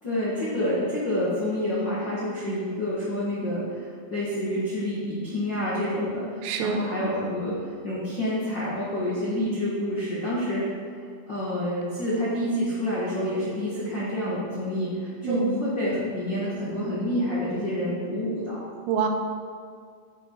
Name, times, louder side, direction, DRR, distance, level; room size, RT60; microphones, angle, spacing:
voice 1, 0.0-7.6 7.8-10.7 11.3-18.6, left 1 dB, 80° left, -8 dB, 1.0 m, -28 dB
voice 2, 6.4-6.8 15.2-15.6 18.9-19.1, right 6 dB, 80° right, 4 dB, 2.8 m, -26 dB
11.0 x 5.5 x 4.6 m, 2.1 s
omnidirectional pair, 4.8 m